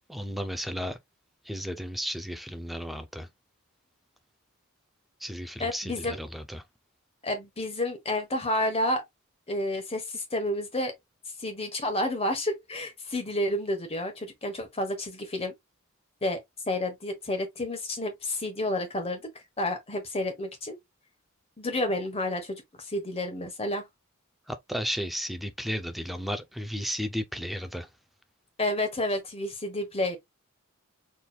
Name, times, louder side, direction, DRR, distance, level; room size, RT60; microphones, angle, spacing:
voice 1, 0.1-1.0 1.4-3.3 5.2-6.6 24.5-27.9, equal, ahead, 0.6 m, -34 dB
voice 2, 5.6-6.2 7.2-9.0 9.5-10.9 11.4-15.5 16.2-16.4 16.7-19.2 19.6-20.8 21.6-23.8 28.6-30.2, left 1 dB, 30° left, 1.4 m, -30 dB
4.5 x 3.6 x 2.4 m
head